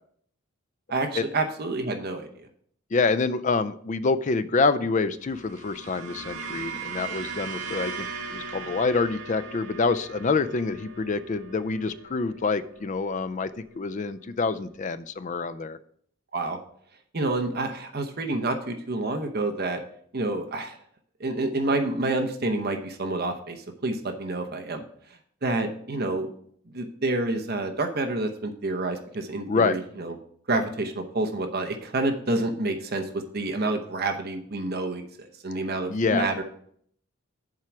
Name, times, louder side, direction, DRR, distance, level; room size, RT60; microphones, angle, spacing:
voice 1, 0.9-2.5 16.3-16.6 17.1-19.8 20.1-20.8 21.2-24.8 25.4-26.3 26.7-30.1 30.5-33.1 33.3-36.4, right 2 dB, 45° right, 5 dB, 0.8 m, -28 dB
voice 2, 2.9-15.8 29.5-29.8 35.9-36.3, left 4 dB, 35° left, 13 dB, 0.4 m, -26 dB
sound 1, 5.2-13.7, right 5 dB, 70° right, 1.7 m, -39 dB
7.5 x 4.6 x 6.0 m, 0.62 s
head